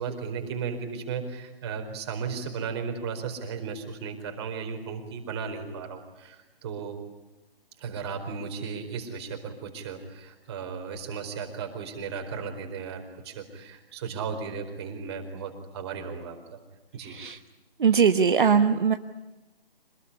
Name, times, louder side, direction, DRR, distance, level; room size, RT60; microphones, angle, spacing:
voice 1, 0.0-7.0 7.8-16.6 16.9-17.2, right 6 dB, 25° right, 4 dB, 4.5 m, -35 dB
voice 2, 17.0-17.4 17.8-18.9, right 6 dB, 55° right, 7 dB, 1.3 m, -21 dB
26.5 x 20.0 x 9.9 m, 1.0 s
hypercardioid pair, 160°, 29 cm